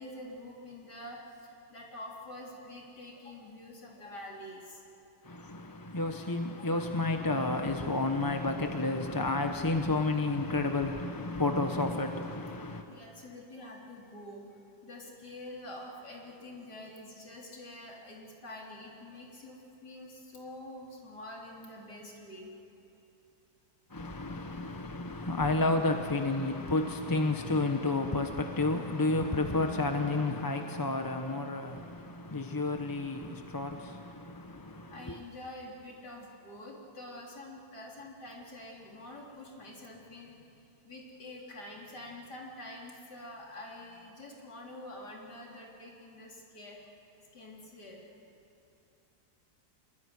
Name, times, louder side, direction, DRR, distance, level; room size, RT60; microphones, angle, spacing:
voice 1, 0.0-4.8 6.6-6.7 12.9-22.5 34.9-40.4 40.8-46.8 47.3-48.0, left 1 dB, 80° left, 4.2 m, -46 dB
voice 2, 5.2-12.8 23.9-35.2, left 2 dB, 15° left, 0.7 m, -31 dB
25.0 x 22.0 x 9.5 m
omnidirectional pair, 1.8 m